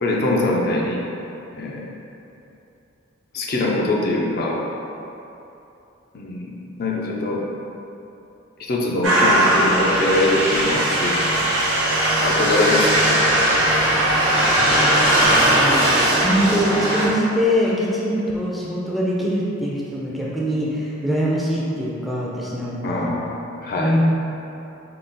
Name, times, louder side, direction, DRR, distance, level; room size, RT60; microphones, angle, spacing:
voice 1, 0.0-1.0 1.5-1.9 3.3-4.6 6.1-7.4 8.6-11.3 12.2-13.6 22.8-23.9, left 2 dB, 50° left, -3 dB, 0.5 m, -23 dB
sound 1, 9.0-17.1, right 1 dB, 85° right, 1.1 m, -18 dB
voice 2, 14.6-23.1 23.8-24.0, equal, ahead, -7 dB, 0.4 m, -23 dB
3.7 x 2.4 x 3.8 m, 2.8 s
head